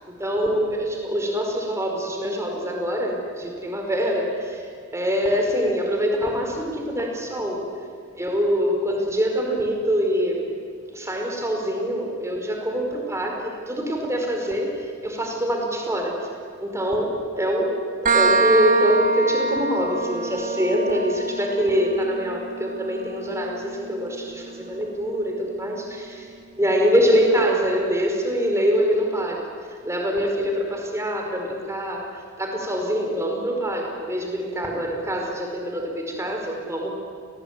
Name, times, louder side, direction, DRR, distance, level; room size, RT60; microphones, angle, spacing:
voice 1, 0.2-4.7 4.9-7.6 8.1-10.5 10.9-14.7 15.0-16.2 16.6-17.1 17.4-26.3 26.6-29.4 29.8-32.0 32.4-36.9, equal, 15° right, 1 dB, 4.9 m, -24 dB
sound 1, 18.1-25.5, right 3 dB, 35° right, 1.4 m, -26 dB
29.0 x 19.5 x 9.5 m, 2.2 s
head